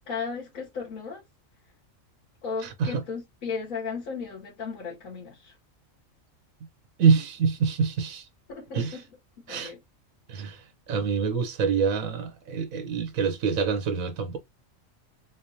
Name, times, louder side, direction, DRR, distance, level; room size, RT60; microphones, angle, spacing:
voice 1, 0.1-1.2 2.4-5.6 8.5-9.0 9.4-9.8, left 5 dB, 90° left, 1.9 m, -35 dB
voice 2, 2.6-3.0 7.0-8.3 8.7-9.0 9.5-9.7 10.3-14.4, right 6 dB, 85° right, 1.3 m, -26 dB
3.8 x 3.4 x 2.7 m
omnidirectional pair, 1.4 m